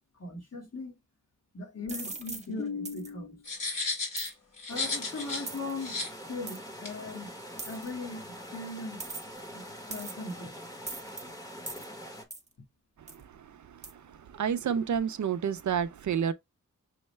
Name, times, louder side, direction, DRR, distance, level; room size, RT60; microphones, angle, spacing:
voice 1, 0.2-1.0 1.5-3.5 4.7-6.0 6.3-7.3 7.6-9.0 9.5-9.6 9.9-10.5, left 3 dB, 50° left, 1.7 m, -38 dB
sound 1, 1.9-2.5 2.8-3.1 4.2-4.3 5.5-5.7 6.5-6.6 7.6-7.9 9.0-9.4 9.9-10.3 10.9-11.2 11.7-11.9 12.3-12.5 13.1-13.2 13.8-13.9, right 3 dB, 20° right, 0.6 m, -40 dB
sound 2, 3.4-5.5 5.8-6.1 6.8-6.9, left 3 dB, 75° left, 2.8 m, -34 dB
sound 3, 4.7-12.2, equal, 10° left, 1.0 m, -44 dB
voice 2, 14.3-16.3, right 8 dB, 65° right, 0.5 m, -29 dB
6.3 x 2.1 x 3.2 m
wide cardioid pair, 115°, 32 cm